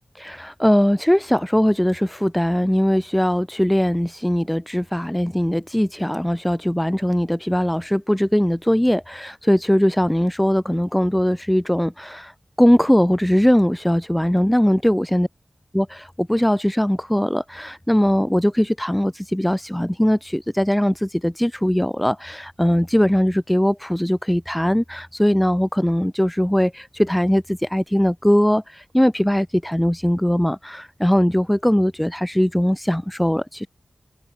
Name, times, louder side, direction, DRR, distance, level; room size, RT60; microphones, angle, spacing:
voice 1, 0.2-15.3 15.7-33.7, equal, 5° left, 0.4 m, -20 dB
wide cardioid pair, 65°, 0 cm